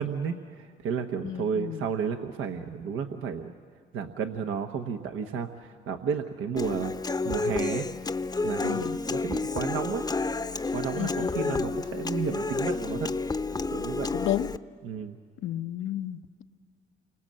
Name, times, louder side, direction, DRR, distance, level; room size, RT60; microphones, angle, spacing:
voice 1, 0.0-3.5 3.9-6.9 7.2-7.8 8.4-10.0 10.7-13.1 13.7-14.1 14.8-15.2, right 6 dB, 90° right, 1.2 m, -32 dB
voice 2, 1.2-1.9 8.6-9.0 11.0-11.6 14.1-14.5 15.4-16.4, left 12 dB, 85° left, 0.9 m, -32 dB
Human voice / Acoustic guitar, 6.6-14.6, left 3 dB, 20° left, 0.7 m, -30 dB
29.0 x 24.5 x 7.7 m
cardioid pair, 90°, 20 cm